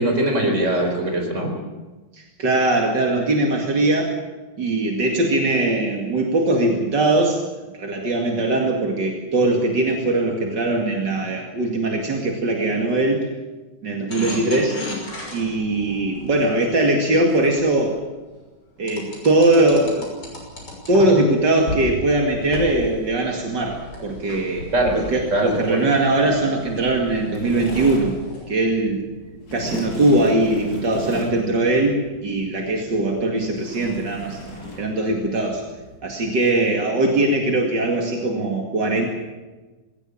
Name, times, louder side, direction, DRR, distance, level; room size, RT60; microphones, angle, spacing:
voice 1, 0.0-1.6 24.7-25.8, right 1 dB, 40° right, 3 dB, 4.8 m, -21 dB
voice 2, 2.1-4.2 4.6-7.4 7.7-13.2 13.8-14.8 15.3-18.0 18.8-20.1 20.9-28.1 28.5-29.0 29.5-34.4 34.8-35.6 36.0-39.1, right 2 dB, 75° right, 1 dB, 2.9 m, -21 dB
sound 1, 14.1-18.0 18.9-21.3 21.7-21.9 22.3-28.4, left 1 dB, 75° left, 6.8 m, -35 dB
sound 2, 26.5-36.0, left 1 dB, 55° left, 5.9 m, -36 dB
20.5 x 17.5 x 8.6 m, 1.2 s
omnidirectional pair, 1.9 m